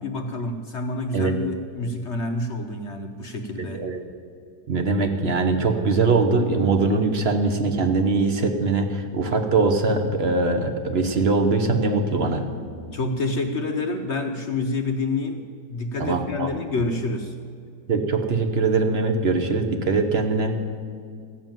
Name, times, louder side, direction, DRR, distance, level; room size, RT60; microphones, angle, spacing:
voice 1, 0.0-3.9 12.9-15.4 15.7-17.4, left 2 dB, 55° left, 5 dB, 0.8 m, -28 dB
voice 2, 3.6-4.0 4.7-12.5 16.0-16.5 17.9-20.5, right 3 dB, 40° right, 5 dB, 1.0 m, -22 dB
15.0 x 7.5 x 9.0 m, 2.2 s
omnidirectional pair, 2.0 m